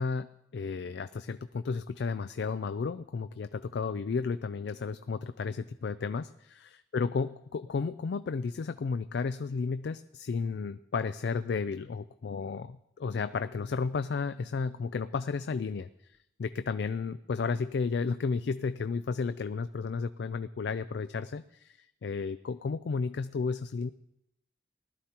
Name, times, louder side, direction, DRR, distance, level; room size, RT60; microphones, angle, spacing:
voice 1, 0.0-23.9, left 5 dB, 75° left, 12 dB, 0.4 m, -33 dB
19.5 x 12.5 x 2.9 m, 0.84 s
head